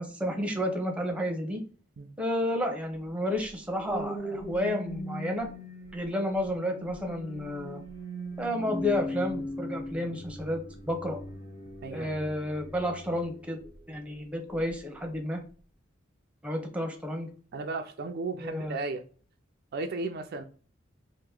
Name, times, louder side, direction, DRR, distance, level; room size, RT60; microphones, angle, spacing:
voice 1, 0.0-1.6 2.2-5.5 5.9-7.8 8.4-11.2 11.9-13.6 13.9-15.4 16.4-17.3 18.4-18.8, left 1 dB, 5° right, 0.8 m, -31 dB
sound 1, 3.4-14.0 14.5-14.8, left 1 dB, 35° left, 0.8 m, -40 dB
voice 2, 17.5-19.0 19.7-20.4, right 3 dB, 55° right, 0.4 m, -34 dB
2.9 x 2.6 x 3.6 m
head